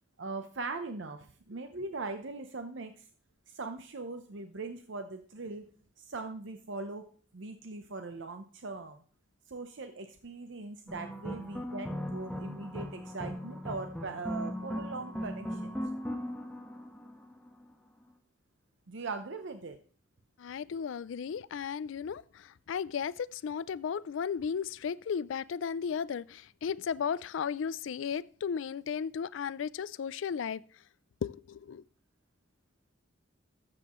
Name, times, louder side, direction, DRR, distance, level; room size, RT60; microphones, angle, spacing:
voice 1, 0.2-3.0 3.5-5.7 6.0-9.0 9.5-15.7 18.9-19.8, right 3 dB, 65° right, 0.7 m, -40 dB
sound 1, 10.9-17.5, equal, 5° left, 1.1 m, -38 dB
voice 2, 20.4-22.2 22.7-30.6 31.2-31.8, left 7 dB, 75° left, 0.4 m, -35 dB
13.0 x 7.8 x 3.0 m
head